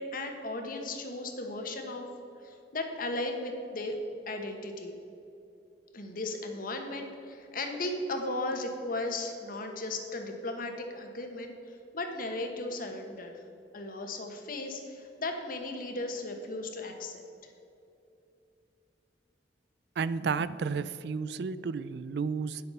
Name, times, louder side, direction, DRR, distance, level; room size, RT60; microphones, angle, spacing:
voice 1, 0.0-2.1 2.4-4.0 4.3-5.0 5.9-13.3 13.7-17.5, left 2 dB, 50° left, 4 dB, 1.3 m, -36 dB
voice 2, 20.0-22.6, right 5 dB, 65° right, 15 dB, 0.4 m, -32 dB
9.8 x 7.7 x 5.6 m, 2.8 s
head